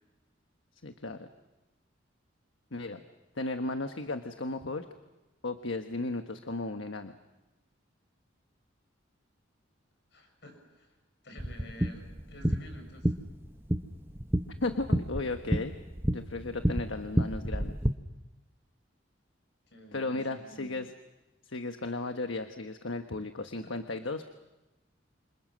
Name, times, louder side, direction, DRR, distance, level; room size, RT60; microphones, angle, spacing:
voice 1, 0.8-1.3 2.7-3.0 3.3-4.8 5.4-7.1 14.6-15.8 16.1-17.8 19.9-20.9 21.4-24.3, left 2 dB, 80° left, 7 dB, 1.3 m, -35 dB
voice 2, 10.1-10.9 11.2-13.1 19.7-20.8 23.6-23.7, equal, 60° left, 4 dB, 6.7 m, -50 dB
sound 1, 11.4-17.9, right 1 dB, 10° right, 1.1 m, -30 dB
28.5 x 27.0 x 6.3 m, 1.0 s
head